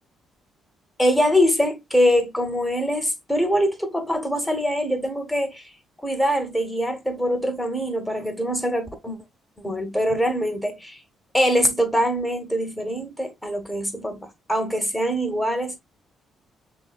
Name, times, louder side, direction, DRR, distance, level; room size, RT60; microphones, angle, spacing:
voice 1, 1.0-5.7 6.0-9.2 9.6-11.0 11.3-15.8, equal, 5° left, 1.3 m, -23 dB
5.9 x 2.3 x 2.4 m
cardioid pair, 90°, 0 cm